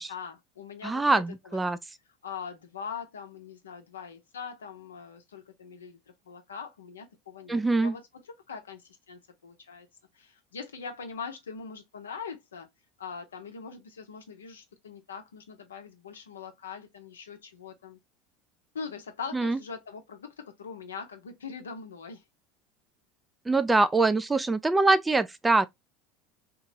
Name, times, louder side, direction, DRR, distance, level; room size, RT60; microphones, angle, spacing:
voice 1, 0.0-1.8 2.2-6.0 6.3-8.1 8.3-9.9 10.1-12.7 13.0-18.0 18.7-22.2, left 6 dB, 80° left, 0.7 m, -42 dB
voice 2, 0.8-1.8 7.5-7.9 19.3-19.6 23.5-25.7, right 3 dB, 15° right, 0.3 m, -24 dB
2.9 x 2.5 x 2.6 m
figure-of-eight pair, 75°, 0 cm